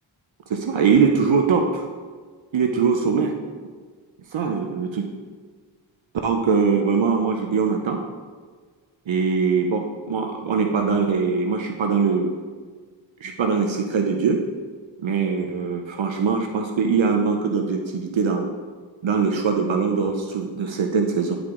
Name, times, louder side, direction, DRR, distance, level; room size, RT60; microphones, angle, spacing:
voice 1, 0.5-1.8 2.5-3.3 4.3-5.1 6.2-8.0 9.1-12.3 13.2-14.4 15.0-18.5 19.0-21.4, right 5 dB, 75° right, 3 dB, 0.7 m, -22 dB
10.0 x 4.8 x 3.7 m, 1.6 s
wide cardioid pair, 80°, 46 cm